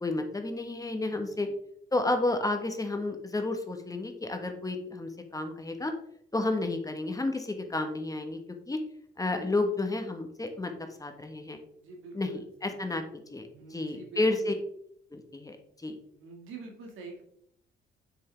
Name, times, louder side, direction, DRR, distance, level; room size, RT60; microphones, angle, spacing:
voice 1, 0.0-1.5 1.9-5.9 6.3-8.4 8.7-8.8 9.2-11.6 12.1-13.0 13.3-14.5 15.1-15.6 15.8-15.9, left 2 dB, 15° left, 6 dB, 1.3 m, -31 dB
voice 2, 1.1-1.5 11.7-12.7 13.5-14.5 16.2-17.2, right 4 dB, 90° right, 1 dB, 2.1 m, -46 dB
7.4 x 6.2 x 3.4 m, 0.69 s
cardioid pair, 90°, 20 cm